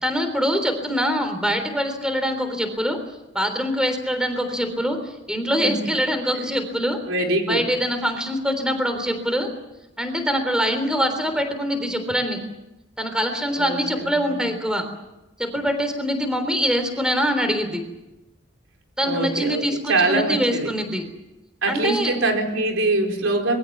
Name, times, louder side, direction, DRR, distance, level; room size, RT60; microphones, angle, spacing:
voice 1, 0.0-3.0 3.3-7.0 7.5-9.5 10.0-12.4 13.0-14.9 15.4-17.8 19.0-21.1 21.7-22.1, equal, 5° right, 7 dB, 3.5 m, -24 dB
voice 2, 6.7-7.7 13.6-14.4 19.0-19.6 19.9-20.7 21.6-23.6, right 2 dB, 90° right, 3 dB, 4.5 m, -24 dB
26.0 x 22.0 x 7.4 m, 0.95 s
head